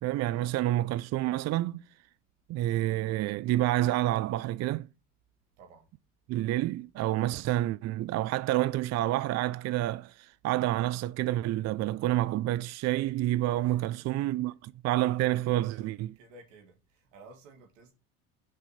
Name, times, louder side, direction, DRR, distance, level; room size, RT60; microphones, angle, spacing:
voice 1, 0.0-1.8 2.5-4.9 6.3-16.1, right 15 dB, 45° right, 0.4 m, -28 dB
voice 2, 15.4-15.9 16.2-17.9, right 2 dB, 85° right, 2.1 m, -54 dB
6.1 x 5.5 x 4.1 m
hypercardioid pair, 60°, 37 cm